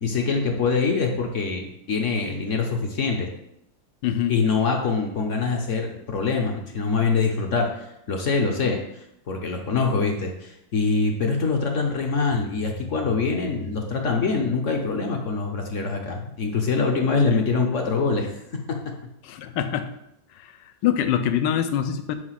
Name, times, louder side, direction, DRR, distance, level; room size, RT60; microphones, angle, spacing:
voice 1, 0.0-3.3 4.3-18.4 18.7-18.8, left 4 dB, 55° left, 2 dB, 0.9 m, -24 dB
voice 2, 4.0-4.3 17.2-17.5 19.2-19.9 20.3-22.2, left 10 dB, 75° left, 9 dB, 1.3 m, -25 dB
5.2 x 4.8 x 5.7 m, 0.80 s
omnidirectional pair, 2.0 m